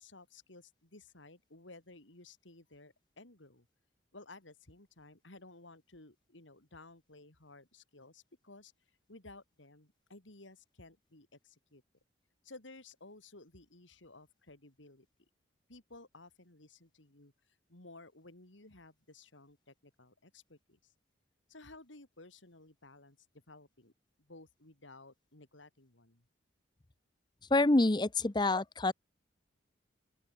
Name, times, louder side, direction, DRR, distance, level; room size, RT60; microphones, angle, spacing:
voice 1, 0.0-3.7 4.1-8.7 9.1-11.8 12.4-15.1 15.7-20.9 21.5-23.2 23.5-23.9 24.2-26.3, left 2 dB, 80° left, 3.7 m, -56 dB
voice 2, 27.5-28.9, left 2 dB, 20° left, 0.7 m, -27 dB
open air
head